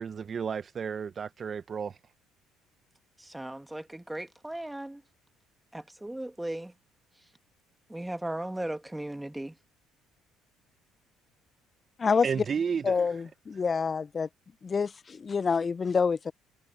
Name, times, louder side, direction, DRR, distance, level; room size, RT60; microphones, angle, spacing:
voice 1, 0.0-2.0 12.2-13.1, right 6 dB, 40° right, 0.9 m, -32 dB
voice 2, 3.2-5.0 5.7-6.7 7.9-9.6, right 1 dB, 10° right, 2.1 m, -37 dB
voice 3, 12.8-14.3 14.6-16.3, left 5 dB, 35° left, 0.7 m, -27 dB
hypercardioid pair, 65°, 0 cm